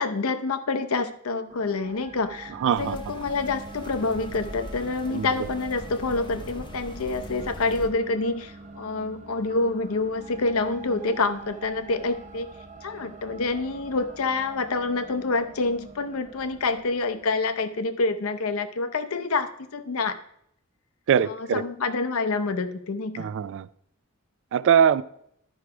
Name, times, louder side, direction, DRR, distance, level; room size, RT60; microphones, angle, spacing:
voice 1, 0.0-12.5 12.8-20.2 21.2-23.3, left 3 dB, 70° left, 10 dB, 0.7 m, -27 dB
sound 1, 1.5-17.7, right 3 dB, 35° right, 0.8 m, -45 dB
voice 2, 2.6-3.0 5.1-5.3 21.1-21.6 23.2-23.7 24.5-25.0, right 8 dB, 60° right, 17 dB, 0.3 m, -22 dB
sound 2, 2.8-7.9, left 1 dB, 20° left, 0.7 m, -41 dB
12.0 x 4.7 x 4.8 m, 0.72 s
head